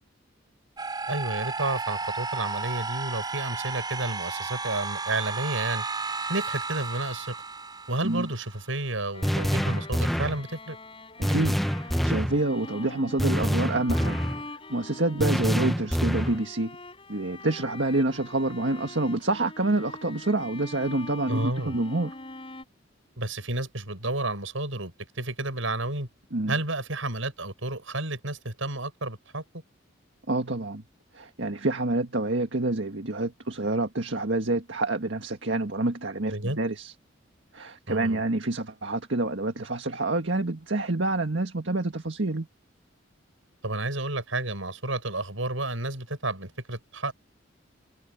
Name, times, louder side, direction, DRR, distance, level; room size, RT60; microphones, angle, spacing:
sound 1, 0.8-8.7, right 4 dB, 20° right, 5.1 m, -33 dB
voice 1, 1.1-5.9 6.3-7.4 7.9-10.8 21.3-21.8 23.2-26.1 26.5-29.4 36.3-36.6 37.9-38.2 43.6-47.1, right 2 dB, 80° right, 7.2 m, -31 dB
Bowed string instrument, 9.1-22.6, left 2 dB, 30° left, 5.0 m, -44 dB
sound 2, 9.2-10.4 11.2-12.4 13.2-14.4 15.2-16.4, equal, ahead, 0.9 m, -26 dB
voice 2, 11.2-14.2 14.5-16.8 17.1-22.1 26.3-26.5 30.3-30.8 31.1-36.9 37.5-42.5, right 2 dB, 65° right, 1.8 m, -27 dB
head